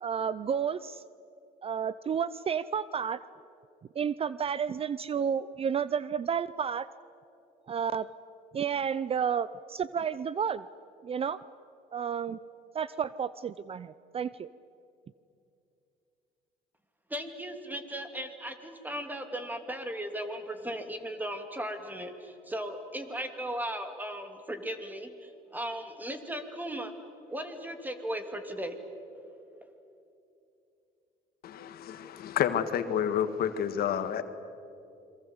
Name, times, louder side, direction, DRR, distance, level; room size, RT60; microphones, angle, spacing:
voice 1, 0.0-1.0 1.6-3.2 4.0-6.9 7.7-8.1 8.5-10.6 11.0-11.4 11.9-12.4 12.7-14.5, right 7 dB, 35° right, 17 dB, 0.5 m, -31 dB
voice 2, 17.1-26.9 27.3-28.8, equal, 10° right, 7 dB, 2.6 m, -37 dB
voice 3, 31.4-34.2, left 9 dB, 65° left, 9 dB, 1.7 m, -29 dB
28.5 x 23.0 x 8.0 m, 2.7 s
cardioid pair, 110°, 17 cm